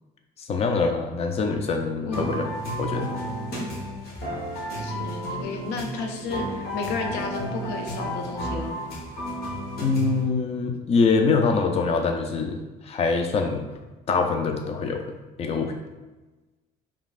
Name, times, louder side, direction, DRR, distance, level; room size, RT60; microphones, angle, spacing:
voice 1, 0.4-2.5 2.8-3.1 9.8-13.7 14.1-15.1 15.4-15.8, left 4 dB, 35° left, 4 dB, 0.5 m, -24 dB
voice 2, 2.0-2.3 4.7-8.8, left 3 dB, 90° left, 3 dB, 0.6 m, -32 dB
sound 1, 2.1-10.2, equal, 65° left, 1.4 m, -32 dB
5.0 x 3.5 x 2.5 m, 1.2 s
cardioid pair, 110°, 17 cm